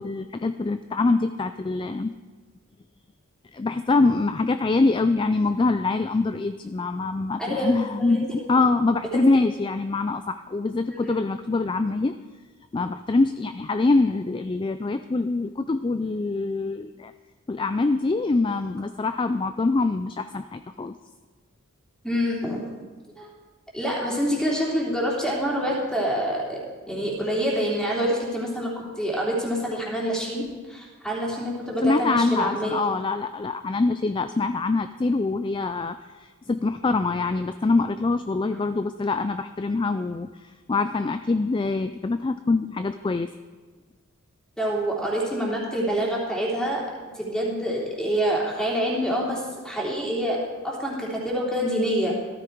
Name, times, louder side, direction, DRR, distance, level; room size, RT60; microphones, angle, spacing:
voice 1, 0.0-2.1 3.5-12.1 12.7-17.1 17.5-20.9 31.8-43.3, left 3 dB, 20° left, 10 dB, 0.3 m, -24 dB
voice 2, 7.4-8.6 9.1-9.2 10.9-11.2 22.0-22.7 23.2-23.3 23.7-26.6 26.9-32.8 44.6-46.8 47.1-52.2, equal, 5° left, -4 dB, 3.1 m, -26 dB
15.5 x 13.5 x 4.6 m, 1.4 s
head